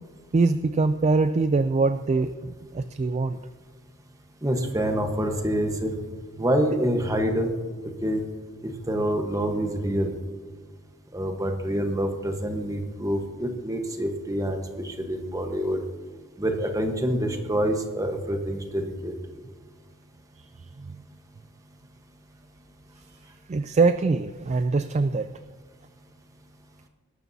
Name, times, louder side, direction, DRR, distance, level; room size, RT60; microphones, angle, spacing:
voice 1, 0.3-3.4 20.4-20.5 20.8-21.0 23.5-25.3, right 3 dB, 30° right, 11 dB, 0.3 m, -23 dB
voice 2, 4.4-5.9 6.4-7.5 7.8-8.2 8.6-10.2 11.1-15.8 16.4-19.1, equal, 15° right, 4 dB, 1.1 m, -26 dB
20.5 x 12.0 x 2.7 m, 1.4 s
head